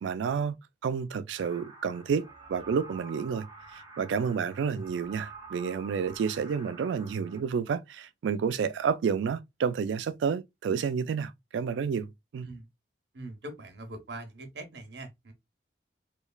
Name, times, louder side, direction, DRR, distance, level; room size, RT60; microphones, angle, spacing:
voice 1, 0.0-0.6 0.8-12.5, right 6 dB, 90° right, 0.3 m, -30 dB
sound 1, 1.4-7.4, right 4 dB, 20° right, 0.8 m, -48 dB
voice 2, 13.1-15.3, right 2 dB, 70° right, 0.8 m, -42 dB
3.1 x 2.3 x 2.3 m
head